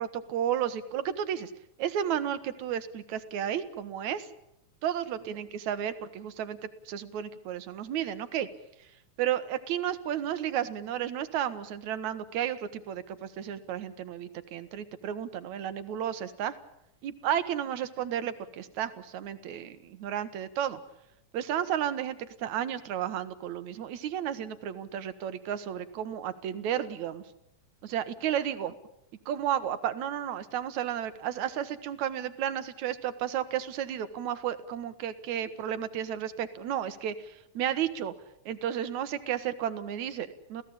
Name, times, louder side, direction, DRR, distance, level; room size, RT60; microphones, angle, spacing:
voice 1, 0.0-1.5 1.8-4.3 4.8-8.5 9.2-16.6 17.0-20.8 21.3-27.2 27.8-28.7 29.3-38.1 38.5-40.6, right 10 dB, 75° right, 12 dB, 2.6 m, -32 dB
28.0 x 16.5 x 8.7 m, 0.82 s
omnidirectional pair, 3.3 m